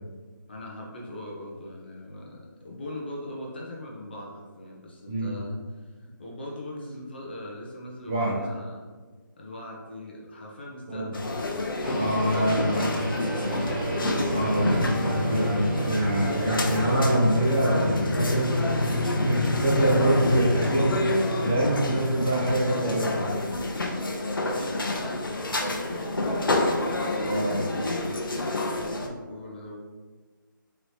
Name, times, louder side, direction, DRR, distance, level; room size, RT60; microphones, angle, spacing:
voice 1, 0.5-8.8 9.4-11.7 12.3-13.1 13.3-13.8 14.6-15.0 24.4-25.2 25.6-29.8, left 1 dB, 30° left, -3 dB, 0.6 m, -40 dB
voice 2, 5.1-5.4 8.0-8.4 10.9-11.2 11.9-13.0 14.2-23.3 27.2-27.7, equal, 15° right, -6 dB, 0.7 m, -25 dB
sound 1, 11.1-29.1, left 2 dB, 80° left, 0.7 m, -29 dB
sound 2, 11.8-24.0, right 1 dB, ahead, 1.1 m, -31 dB
Wind instrument woodwind instrument, 18.2-23.4, right 2 dB, 55° right, 1.1 m, -48 dB
4.1 x 3.0 x 3.2 m, 1.4 s
figure-of-eight pair, 165°, 11 cm